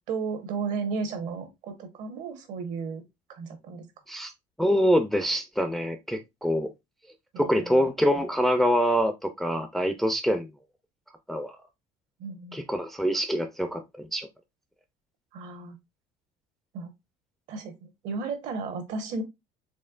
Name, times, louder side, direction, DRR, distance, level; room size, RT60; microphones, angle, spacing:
voice 1, 0.1-3.0 3.3-3.8 7.3-7.8 12.2-12.6 15.3-15.8 16.7-16.9 17.5-19.2, right 4 dB, 65° right, 1.1 m, -34 dB
voice 2, 4.6-6.7 7.4-10.5 11.3-11.5 12.5-14.3, equal, ahead, 0.4 m, -25 dB
4.3 x 3.0 x 2.4 m
cardioid pair, 140°, 14 cm